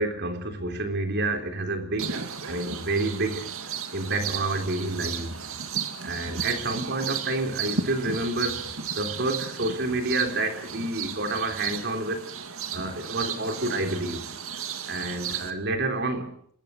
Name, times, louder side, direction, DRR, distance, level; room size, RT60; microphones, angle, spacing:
voice 1, 0.0-3.5 3.9-5.4 6.0-12.3 12.7-14.2 14.9-16.3, right 2 dB, 50° right, 3.8 m, -29 dB
sound 1, 2.0-15.5, right 6 dB, 65° right, 2.3 m, -34 dB
26.0 x 21.0 x 6.6 m
head